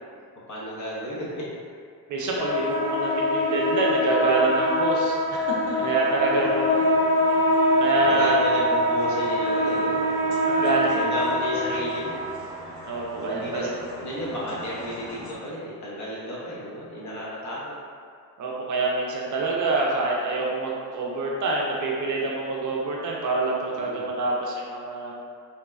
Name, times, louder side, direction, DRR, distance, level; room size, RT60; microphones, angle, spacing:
voice 1, 0.5-1.4 5.6-6.9 8.0-10.4 10.9-12.3 13.1-13.7 14.0-17.7 23.7-24.1, equal, 45° left, -7 dB, 0.9 m, -33 dB
voice 2, 2.1-6.7 7.8-8.4 10.5-10.9 12.9-13.7 18.4-25.1, right 3 dB, 50° right, -3 dB, 0.5 m, -26 dB
sound 1, 2.4-15.3, left 1 dB, 70° left, 1.5 m, -25 dB
2.7 x 2.2 x 2.2 m, 2.1 s
cardioid pair, 85°, 41 cm